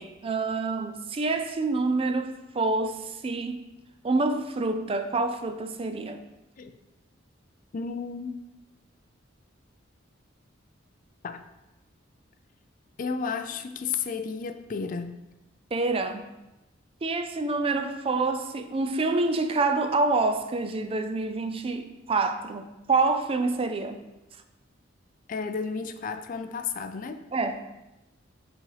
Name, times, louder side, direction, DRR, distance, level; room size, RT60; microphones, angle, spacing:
voice 1, 0.0-3.6 4.0-6.2 15.7-16.3 17.0-24.0 27.3-27.6, right 3 dB, 30° right, 8 dB, 0.4 m, -27 dB
voice 2, 7.7-8.4 11.2-11.4 13.0-15.2 25.3-27.3, left 5 dB, 45° left, 9 dB, 0.4 m, -32 dB
6.4 x 4.0 x 4.9 m, 1.0 s
head